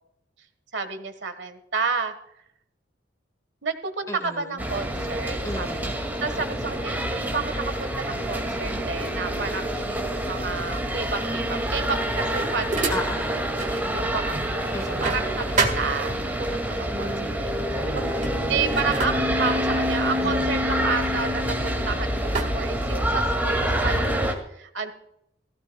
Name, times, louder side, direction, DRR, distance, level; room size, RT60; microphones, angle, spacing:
voice 1, 0.7-2.1 3.6-5.7 6.2-13.1 13.7-24.9, right 4 dB, 75° right, 9 dB, 1.5 m, -31 dB
voice 2, 4.1-4.4 5.4-6.0 12.9-13.5 14.7-15.2 20.2-20.5, left 1 dB, 15° left, 7 dB, 1.2 m, -34 dB
sound 1, 4.6-24.3, equal, 10° right, 2.2 m, -27 dB
sound 2, 11.8-13.8 14.2-16.5 17.4-17.6 18.0-21.8 22.3-23.5, right 4 dB, 45° right, 1.7 m, -31 dB
18.5 x 15.5 x 2.3 m, 0.76 s
head